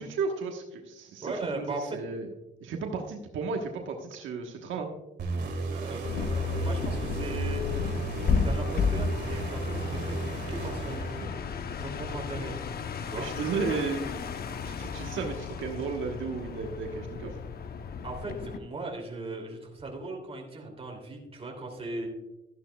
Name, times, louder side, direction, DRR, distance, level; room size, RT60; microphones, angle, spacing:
voice 1, 0.0-2.3 2.6-4.9 11.2-11.3 13.2-14.0 14.6-17.4, right 5 dB, 80° right, 2 dB, 1.3 m, -34 dB
voice 2, 1.2-2.0 5.6-7.6 8.4-11.2 11.8-12.5 13.0-13.3 18.0-22.1, right 2 dB, 30° right, 1 dB, 2.8 m, -38 dB
sound 1, 5.2-11.7, right 4 dB, 55° right, 2.1 m, -35 dB
sound 2, 6.0-18.6, left 5 dB, 50° left, 0.8 m, -33 dB
13.0 x 11.0 x 2.3 m, 0.97 s
cardioid pair, 90°, 20 cm